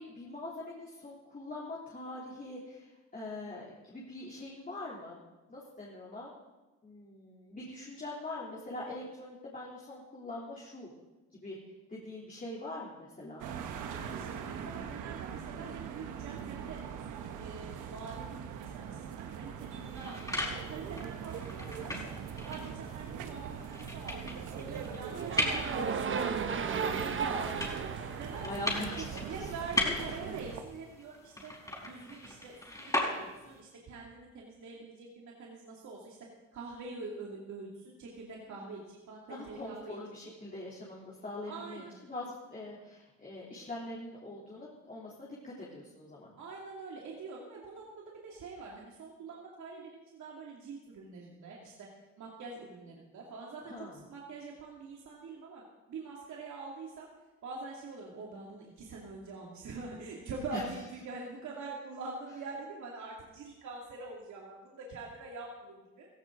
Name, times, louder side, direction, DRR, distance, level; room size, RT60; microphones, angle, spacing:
voice 1, 0.0-5.2 5.5-6.3 6.8-10.9 11.3-11.6 11.9-13.4 28.4-29.5 29.8-29.9 38.6-38.7 39.3-46.3 53.7-54.0 60.5-60.6, left 2 dB, 30° left, -6 dB, 3.3 m, -43 dB
sound 1, 13.4-30.6, right 7 dB, 90° right, 1.2 m, -41 dB
voice 2, 13.7-22.0 22.4-26.4 26.8-31.5 31.8-36.2 36.5-40.0 41.5-41.9 46.4-51.9 52.2-55.6 55.9-57.1 57.4-66.1, right 3 dB, 70° right, -3 dB, 2.7 m, -45 dB
sound 2, 19.7-33.6, left 1 dB, 10° left, 4.7 m, -38 dB
sound 3, 25.1-29.3, right 6 dB, 40° right, 1.0 m, -35 dB
16.0 x 15.5 x 3.9 m, 1.1 s
cardioid pair, 90°, 30 cm